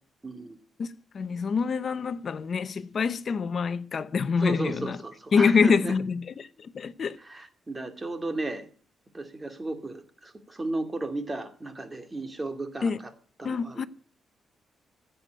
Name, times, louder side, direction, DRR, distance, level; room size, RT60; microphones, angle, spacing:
voice 1, 0.2-0.6 4.4-5.9 7.2-8.7 9.1-12.9 13.4-13.9, right 2 dB, 20° right, 2.3 m, -34 dB
voice 2, 0.8-5.0 5.3-7.2 12.8-13.0 13.4-13.8, left 5 dB, 45° left, 0.8 m, -26 dB
15.0 x 7.9 x 9.3 m
cardioid pair, 125°, 0 cm